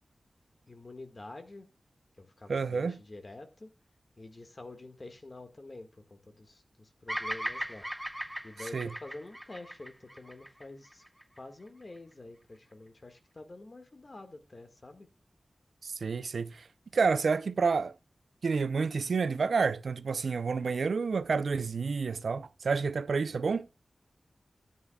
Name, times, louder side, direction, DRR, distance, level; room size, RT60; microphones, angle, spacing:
voice 1, 0.7-1.7 2.2-3.7 4.2-7.9 8.4-11.0 11.4-15.1, left 2 dB, 40° left, 1.8 m, -48 dB
voice 2, 2.5-3.0 8.7-8.9 15.8-16.7 16.9-17.9 18.4-23.7, right 5 dB, 90° right, 0.5 m, -29 dB
Bird vocalization bird call bird song, 7.1-11.4, equal, ahead, 0.4 m, -38 dB
14.5 x 9.5 x 2.3 m
wide cardioid pair, 100°, 0 cm